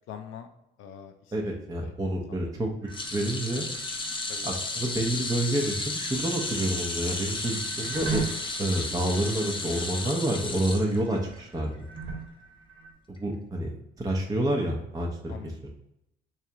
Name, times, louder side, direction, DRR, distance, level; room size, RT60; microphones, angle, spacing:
voice 1, 0.1-0.5 0.8-1.9 2.3-2.7 4.3-4.5 15.3-15.7, left 8 dB, 80° left, 6 dB, 0.4 m, -44 dB
voice 2, 1.3-2.7 3.1-3.7 4.4-8.2 8.6-11.8 13.1-15.7, right 1 dB, 20° right, -1 dB, 0.6 m, -29 dB
sound 1, 2.8-12.9, right 4 dB, 75° right, 1.3 m, -40 dB
sound 2, 2.9-11.4 11.7-12.0 13.2-13.3, left 2 dB, 25° left, 0.7 m, -33 dB
3.1 x 2.8 x 3.5 m, 0.84 s
cardioid pair, 90°, 20 cm